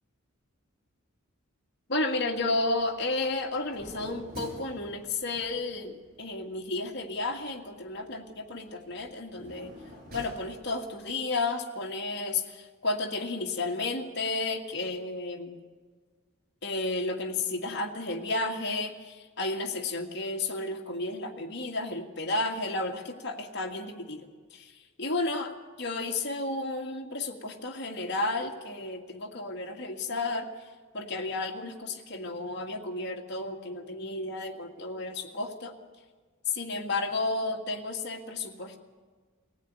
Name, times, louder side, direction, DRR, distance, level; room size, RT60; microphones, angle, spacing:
voice 1, 1.9-9.7 10.1-15.6 16.6-25.5 25.8-30.5 30.9-35.7 36.5-38.8, left 2 dB, 55° left, 2 dB, 2.2 m, -32 dB
sound 1, 2.2-11.1, left 1 dB, 45° right, 7.6 m, -50 dB
23.0 x 15.5 x 9.6 m, 1.5 s
head